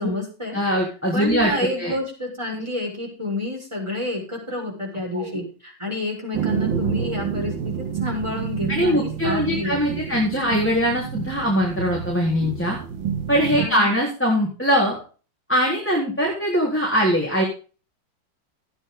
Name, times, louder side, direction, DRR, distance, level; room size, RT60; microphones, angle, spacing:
voice 1, 0.0-0.6 1.1-9.8 10.1-10.2 13.6-13.9, left 1 dB, 15° right, -2 dB, 6.4 m, -29 dB
voice 2, 0.5-1.5 1.8-1.9 5.1-5.4 8.7-12.8 13.3-15.0 15.5-17.4, equal, 5° left, -4 dB, 3.7 m, -22 dB
sound 1, 6.3-13.7, right 7 dB, 75° right, 2.0 m, -29 dB
15.0 x 9.9 x 3.8 m, 0.37 s
omnidirectional pair, 2.1 m